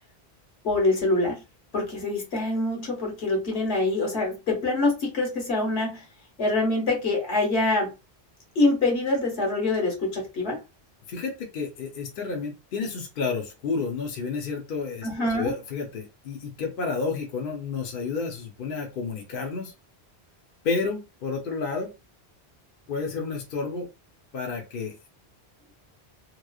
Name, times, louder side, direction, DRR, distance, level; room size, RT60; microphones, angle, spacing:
voice 1, 0.6-1.4 1.7-6.0 6.4-7.9 8.5-10.6 15.0-15.5, left 2 dB, 85° left, 0 dB, 1.4 m, -25 dB
voice 2, 11.1-19.7 20.6-21.9 22.9-23.9 24.3-25.0, left 4 dB, 60° left, 1 dB, 0.8 m, -31 dB
3.0 x 2.0 x 2.3 m, 0.27 s
omnidirectional pair, 1.1 m